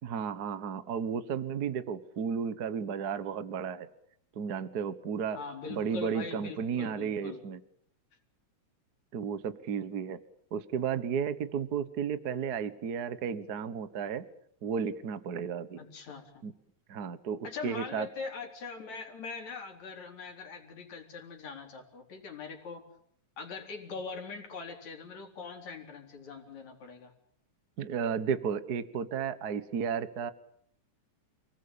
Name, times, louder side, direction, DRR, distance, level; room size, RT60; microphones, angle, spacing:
voice 1, 0.0-3.9 4.3-5.4 5.7-7.6 9.1-10.2 10.5-14.3 14.6-15.8 16.4-16.5 16.9-18.1 27.8-30.3, right 7 dB, 50° right, 13 dB, 1.2 m, -33 dB
voice 2, 5.3-7.4 15.8-16.4 17.4-22.9 23.4-27.1, left 4 dB, 65° left, 3 dB, 5.2 m, -42 dB
29.5 x 19.5 x 8.7 m, 0.68 s
omnidirectional pair, 3.4 m